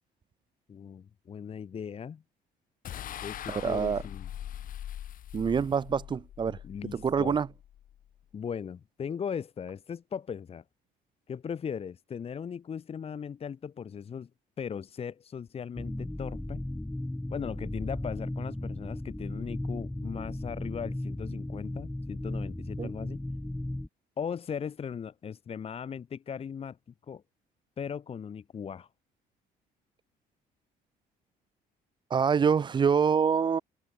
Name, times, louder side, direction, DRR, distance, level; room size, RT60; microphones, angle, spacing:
voice 1, 0.7-2.2 3.2-4.3 6.6-7.4 8.3-10.6 11.3-14.3 14.6-16.6 17.3-23.2 24.2-26.8 27.1-27.2 27.8-28.9, left 7 dB, 35° left, 1.2 m, -38 dB
sound 1, 2.8-8.2, left 11 dB, 55° left, 1.5 m, -42 dB
voice 2, 3.5-4.0 5.3-6.6 6.9-7.5 22.8-22.9 32.1-33.6, right 6 dB, 25° right, 0.5 m, -26 dB
sound 2, 15.8-23.9, left 1 dB, 5° left, 0.8 m, -36 dB
cardioid pair, 110°, 17 cm